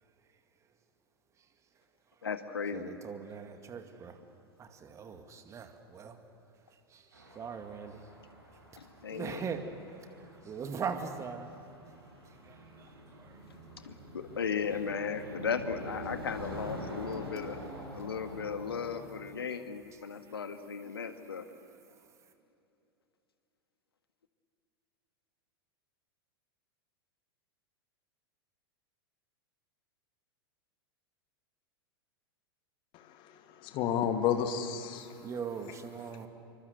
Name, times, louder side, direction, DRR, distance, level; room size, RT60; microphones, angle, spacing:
voice 1, 2.2-2.9 8.8-9.5 13.8-17.6 17.9-21.5, left 6 dB, 70° left, 8 dB, 1.8 m, -36 dB
voice 2, 2.7-4.2 4.6-6.2 6.7-8.1 9.1-11.6 12.2-13.4 14.7-14.8 15.2-15.3 20.3-20.4 21.9-22.1 35.0-36.3, right 6 dB, 20° right, 7 dB, 2.1 m, -41 dB
sound 1, 7.1-19.0, equal, 75° right, 7.6 m, -46 dB
voice 3, 32.9-35.3, left 8 dB, 35° left, 7 dB, 2.1 m, -32 dB
26.5 x 24.5 x 8.1 m, 2.9 s
figure-of-eight pair, 90°, 13 cm